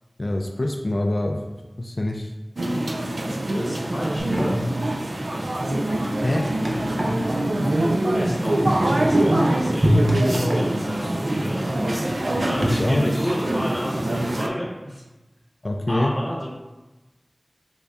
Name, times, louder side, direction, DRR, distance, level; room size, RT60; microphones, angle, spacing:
voice 1, 0.2-1.4 1.8-2.3 6.2-6.4 12.6-13.3 15.6-16.1, left 1 dB, 60° left, 2 dB, 0.3 m, -24 dB
sound 1, 2.6-14.5, right 1 dB, 80° right, 0.3 m, -24 dB
voice 2, 3.5-4.7 8.1-11.7 12.0-15.0 15.9-16.5, equal, ahead, -5 dB, 0.9 m, -31 dB
sound 2, 4.2-12.7, equal, 40° right, 0.6 m, -28 dB
3.3 x 2.6 x 3.5 m, 1.1 s
wide cardioid pair, 55°, 0 cm